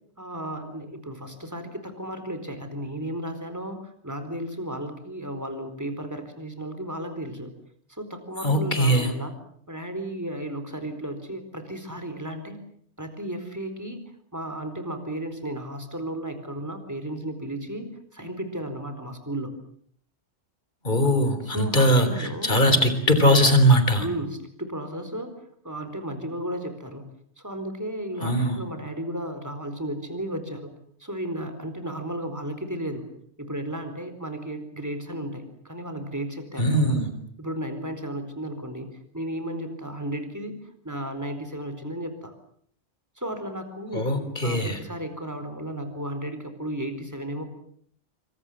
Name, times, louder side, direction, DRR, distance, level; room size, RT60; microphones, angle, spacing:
voice 1, 0.2-7.5 7.9-9.3 9.7-12.6 13.0-14.0 14.3-19.5 21.4-22.6 24.0-25.3 25.6-27.0 27.4-30.7 31.0-33.1 33.4-37.1 37.4-38.9 39.1-40.6 40.8-42.3 43.2-44.1 44.4-47.4, right 1 dB, 15° right, 8 dB, 4.3 m, -34 dB
voice 2, 8.4-9.1 20.8-24.1 28.2-28.6 36.6-37.1 43.9-44.8, equal, 45° left, 10 dB, 3.9 m, -20 dB
27.0 x 25.5 x 7.6 m, 0.62 s
omnidirectional pair, 1.2 m